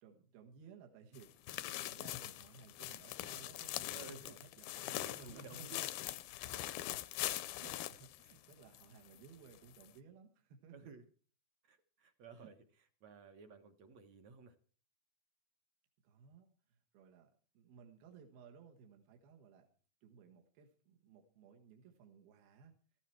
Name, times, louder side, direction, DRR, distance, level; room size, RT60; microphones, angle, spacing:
voice 1, 0.0-5.8 7.5-10.9 12.4-12.5 16.0-19.7 20.0-22.8, right 6 dB, 80° right, 3 dB, 3.4 m, -59 dB
sound 1, 1.2-8.9 9.2-9.3 9.8-9.9, left 15 dB, 80° left, 2.6 m, -42 dB
voice 2, 3.9-4.4 5.0-5.8 10.7-11.0 11.6-12.5 13.0-14.5, right 5 dB, 60° right, 7 dB, 1.9 m, -55 dB
15.5 x 14.0 x 4.5 m, 0.42 s
omnidirectional pair, 4.3 m